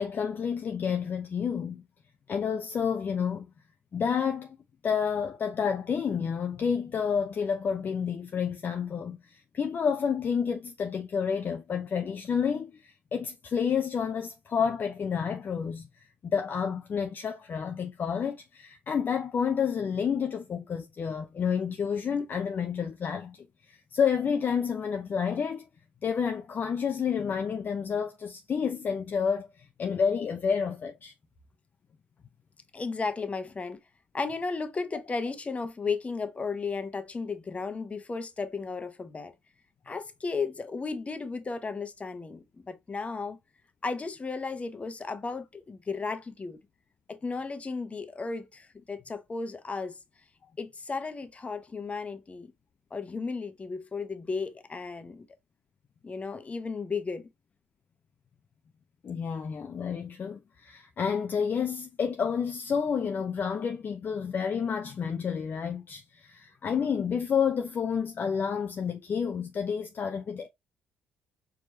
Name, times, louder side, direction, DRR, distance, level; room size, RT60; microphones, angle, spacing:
voice 1, 0.0-1.8 2.3-3.5 3.9-4.6 4.8-25.6 26.0-31.1 59.0-70.5, left 6 dB, 45° left, 0.6 m, -30 dB
voice 2, 32.7-33.8 34.1-39.3 39.9-43.4 43.8-46.6 47.1-50.0 50.6-52.5 52.9-55.3 56.0-57.3, left 4 dB, 30° left, 1.0 m, -34 dB
4.6 x 2.9 x 2.8 m
supercardioid pair, 60°, 4 cm